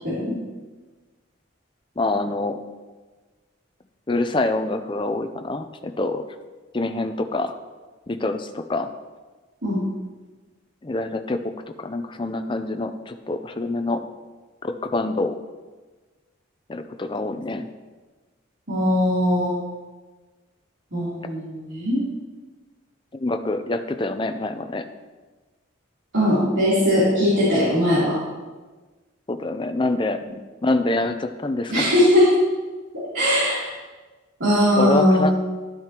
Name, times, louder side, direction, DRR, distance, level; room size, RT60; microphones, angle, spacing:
voice 1, 2.0-2.6 4.1-6.2 6.7-7.5 8.1-8.9 10.8-14.0 14.6-15.4 16.7-17.7 23.1-24.9 29.3-30.2 30.6-31.9 34.8-35.3, left 2 dB, 25° left, 8 dB, 0.5 m, -26 dB
voice 2, 18.7-19.5 20.9-22.0 26.1-28.2 31.7-32.3 33.1-33.7 34.4-35.3, left 1 dB, 65° right, -12 dB, 3.3 m, -19 dB
12.0 x 9.2 x 3.0 m, 1.3 s
head